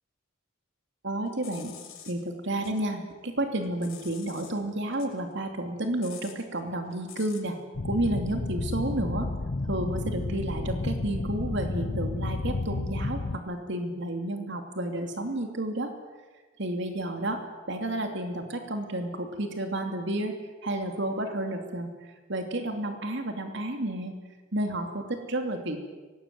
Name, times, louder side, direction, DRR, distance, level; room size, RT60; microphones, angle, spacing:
voice 1, 1.0-1.8 2.0-7.6 7.8-9.3 9.6-15.9 16.6-20.3 20.6-21.9 22.3-24.1 24.5-25.8, right 1 dB, 60° right, 5 dB, 2.8 m, -31 dB
sound 1, 1.3-2.8 3.2-4.6 4.9-7.5, left 10 dB, 90° left, 5.9 m, -48 dB
sound 2, 7.7-13.4, left 2 dB, 50° left, 0.7 m, -31 dB
24.0 x 19.5 x 9.4 m, 1.3 s
head